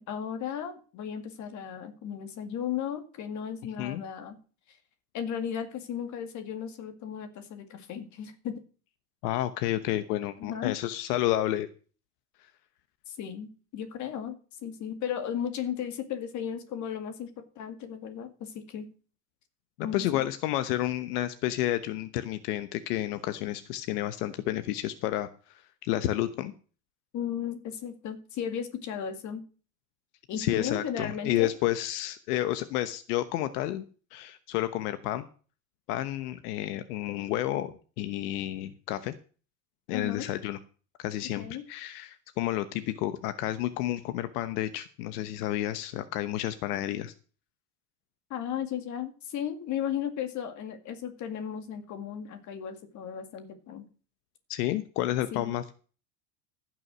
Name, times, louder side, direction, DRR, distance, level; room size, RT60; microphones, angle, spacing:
voice 1, 0.0-4.4 4.7-4.8 5.1-8.6 10.4-10.8 13.1-14.4 14.6-18.9 19.8-20.2 27.1-29.4 30.3-31.5 39.9-40.3 41.4-41.6 48.3-53.9 55.3-55.5, left 8 dB, 40° left, 7 dB, 2.1 m, -35 dB
voice 2, 9.2-11.7 19.8-26.5 30.4-33.8 34.1-35.3 35.9-39.1 39.9-40.6 41.0-47.1 54.5-55.7, left 14 dB, 75° left, 11 dB, 1.1 m, -30 dB
15.5 x 6.3 x 6.2 m, 0.38 s
supercardioid pair, 150°, 46 cm